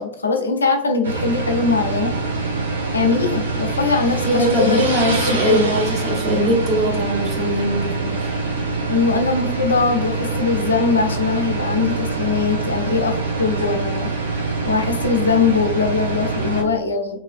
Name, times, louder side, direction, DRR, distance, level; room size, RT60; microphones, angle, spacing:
voice 1, 0.0-2.1 2.9-4.9 5.3-5.6 8.9-14.1 14.7-17.2, left 4 dB, 75° left, 4 dB, 0.4 m, -21 dB
sound 1, 1.0-16.6, right 3 dB, 70° right, 0.6 m, -24 dB
voice 2, 4.2-8.4, equal, 35° right, -1 dB, 0.9 m, -21 dB
3.0 x 2.3 x 2.4 m, 0.73 s
figure-of-eight pair, 90°, 0 cm